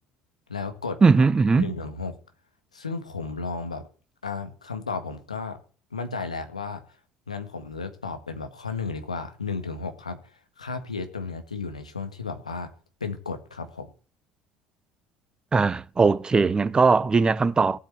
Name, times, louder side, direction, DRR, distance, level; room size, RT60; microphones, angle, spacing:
voice 1, 0.5-1.0 1.6-2.1 2.7-3.8 4.2-5.6 5.9-6.8 7.3-10.3 10.6-12.7 13.0-13.9, left 4 dB, 90° left, 1.7 m, -33 dB
voice 2, 1.0-1.7 15.5-17.8, right 4 dB, 25° right, 0.9 m, -19 dB
16.5 x 8.7 x 8.1 m
figure-of-eight pair, 60°, 3 cm